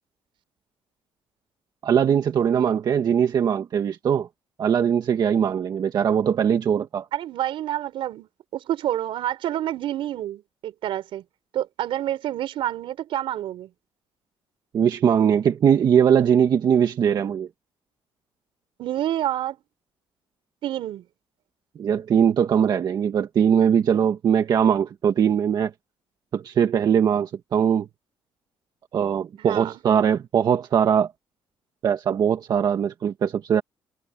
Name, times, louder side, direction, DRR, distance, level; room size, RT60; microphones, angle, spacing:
voice 1, 1.8-4.3 4.6-7.1 14.7-17.5 21.8-25.7 26.3-27.9 28.9-31.1 31.8-33.6, right 8 dB, 45° right, 1.5 m, -21 dB
voice 2, 7.1-11.2 11.5-13.7 18.8-19.6 20.6-21.0 29.4-29.7, right 12 dB, 70° right, 4.8 m, -28 dB
cardioid pair, 135°, 9 cm